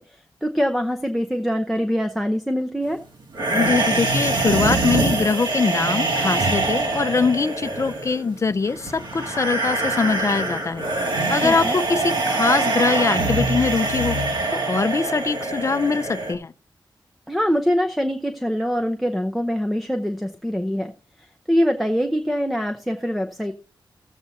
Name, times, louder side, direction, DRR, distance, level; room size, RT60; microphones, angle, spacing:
voice 1, 0.0-3.0 11.4-11.8 17.3-20.9 21.2-23.5, equal, ahead, 0.7 m, -24 dB
sound 1, 3.3-16.3, right 2 dB, 65° right, 2.2 m, -24 dB
voice 2, 3.5-10.9 11.3-14.2 14.5-16.5, left 4 dB, 35° left, 0.5 m, -22 dB
15.5 x 7.8 x 2.7 m
wide cardioid pair, 155°, 8 cm